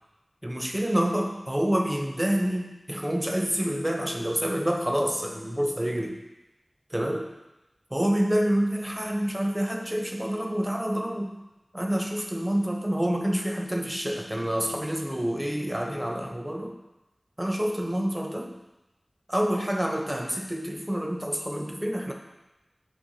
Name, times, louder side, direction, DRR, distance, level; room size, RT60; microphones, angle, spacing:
voice 1, 0.4-6.2 6.9-7.3 7.9-11.3 11.7-16.7 17.4-18.6 19.3-22.1, equal, 15° right, 2 dB, 0.8 m, -27 dB
6.4 x 4.5 x 4.2 m, 1.0 s
wide cardioid pair, 60°, 0 cm